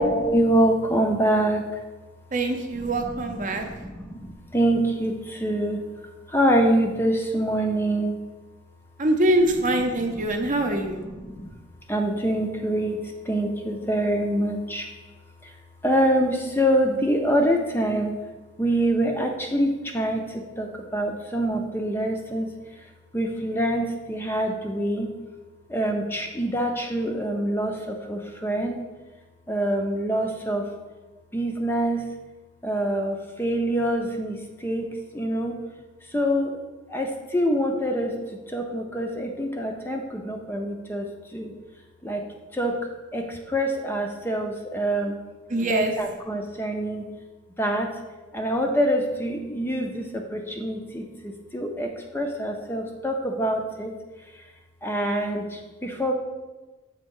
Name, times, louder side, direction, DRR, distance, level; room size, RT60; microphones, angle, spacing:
voice 1, 0.0-1.6 3.5-5.8 6.3-8.2 11.3-11.5 11.9-13.0 13.3-14.9 15.8-18.1 18.6-22.5 23.1-25.1 25.7-28.8 29.5-30.6 31.3-32.0 32.6-34.4 34.6-35.6 36.1-36.5 36.9-41.1 41.3-41.5 42.0-42.2 42.5-42.8 43.1-45.2 45.7-47.0 47.6-47.9 48.3-53.9 54.8-56.1, right 1 dB, 10° left, 3 dB, 0.5 m, -25 dB
voice 2, 2.3-3.7 9.0-11.0 45.5-45.9, right 1 dB, 40° right, 4 dB, 0.7 m, -23 dB
7.5 x 3.5 x 5.4 m, 1.2 s
head